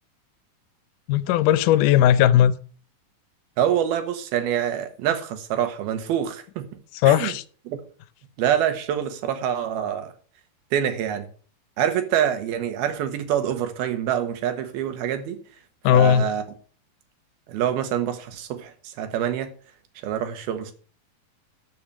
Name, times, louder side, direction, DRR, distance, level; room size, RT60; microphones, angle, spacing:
voice 1, 1.1-2.6 7.0-7.4 15.8-16.3, left 11 dB, 75° left, 2.0 m, -17 dB
voice 2, 3.6-6.7 7.1-7.3 7.7-7.9 8.4-10.1 10.7-11.3 11.8-15.4 15.9-16.4 17.5-19.5 20.0-20.7, right 9 dB, 85° right, 3.3 m, -26 dB
13.0 x 5.8 x 6.0 m
omnidirectional pair, 4.3 m